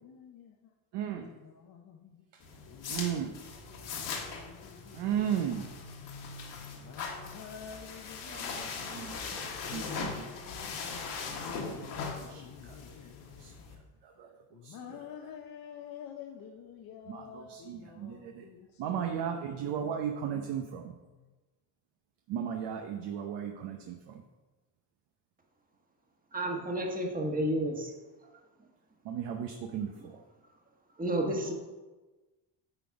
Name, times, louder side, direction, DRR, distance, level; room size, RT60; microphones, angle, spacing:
voice 1, 0.0-0.7 1.2-3.3 3.7-5.2 6.5-9.1 9.6-13.6 14.5-19.5 19.8-20.0 21.0-21.3, left 8 dB, 55° left, 2 dB, 0.7 m, -49 dB
voice 2, 0.9-1.3 2.9-3.3 4.9-5.7 8.3-10.1 11.0-11.1 11.6-11.8 12.3-12.8 13.4-13.5 14.0-14.3 14.6-14.7 17.1-18.5 18.8-20.9 22.3-24.1 29.0-30.2, right 9 dB, 70° right, 3 dB, 0.8 m, -35 dB
sound 1, 2.4-13.7, left 5 dB, 75° left, 1.5 m, -40 dB
voice 3, 26.3-27.9 30.0-30.1 31.0-31.5, right 1 dB, 20° right, 2 dB, 1.3 m, -31 dB
9.0 x 4.0 x 4.7 m, 1.2 s
cardioid pair, 105°, 43 cm